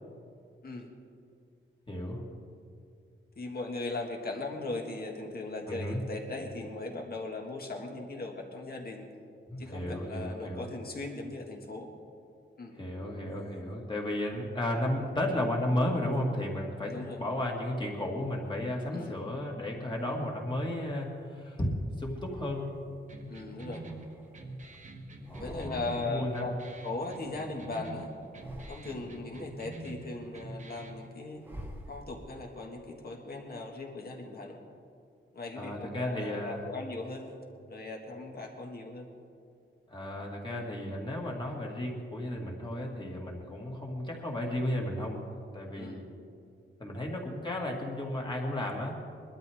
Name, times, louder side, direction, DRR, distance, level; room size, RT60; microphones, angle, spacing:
voice 1, 1.9-2.2 5.7-6.0 9.5-10.6 12.7-22.7 25.3-26.5 35.6-36.6 39.9-45.2 45.5-46.0 46.8-48.9, left 1 dB, 25° left, -1 dB, 2.1 m, -33 dB
voice 2, 3.4-9.1 9.6-11.9 12.6-12.7 16.9-17.2 18.9-19.1 23.3-23.9 25.4-28.1 28.7-31.4 31.9-34.6 35.3-37.3 37.7-39.1 45.8-46.0, left 3 dB, 50° left, 1 dB, 1.9 m, -38 dB
sound 1, 20.2-21.4 22.1-23.0 23.5-24.8 25.1-26.2 26.4-27.8 28.2-29.3 29.7-32.5, equal, 10° right, 1.3 m, -50 dB
sound 2, 23.1-31.1, right 2 dB, 35° right, 1.1 m, -45 dB
22.0 x 12.5 x 3.6 m, 2.4 s
wide cardioid pair, 160°, 21 cm